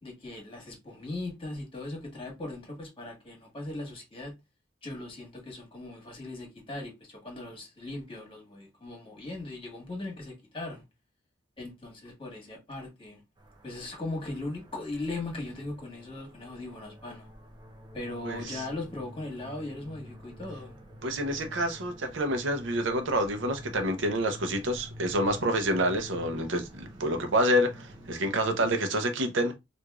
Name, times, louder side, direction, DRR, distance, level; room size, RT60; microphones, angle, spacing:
voice 1, 0.0-4.3 4.8-10.8 11.6-13.2 13.6-17.3 17.9-20.7, left 2 dB, 30° left, 1.4 m, -39 dB
sound 1, 13.4-28.7, equal, 25° right, 0.7 m, -48 dB
voice 2, 18.2-18.6 21.0-29.5, right 1 dB, 80° right, 0.7 m, -28 dB
4.7 x 2.5 x 2.4 m
head